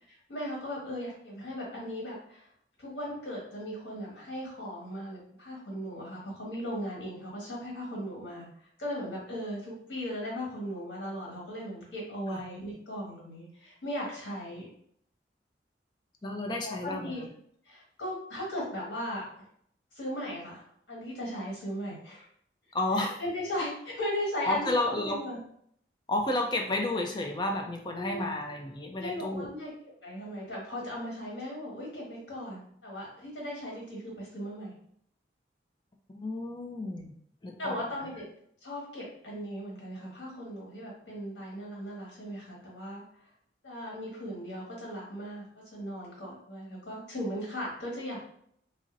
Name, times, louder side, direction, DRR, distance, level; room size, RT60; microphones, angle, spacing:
voice 1, 0.1-2.5 2.8-8.5 8.8-14.6 16.6-17.3 17.6-19.3 19.9-22.3 23.0-25.4 27.9-28.2 29.0-29.7 30.0-34.7 37.6-38.3 38.6-43.0 43.6-45.5 45.7-48.2, equal, 80° left, -3 dB, 1.4 m, -37 dB
voice 2, 16.2-17.3 22.7-23.1 24.4-25.2 26.1-29.5 36.1-37.1 37.4-38.1, left 2 dB, 25° left, 2 dB, 0.4 m, -31 dB
2.5 x 2.0 x 3.9 m, 0.68 s
head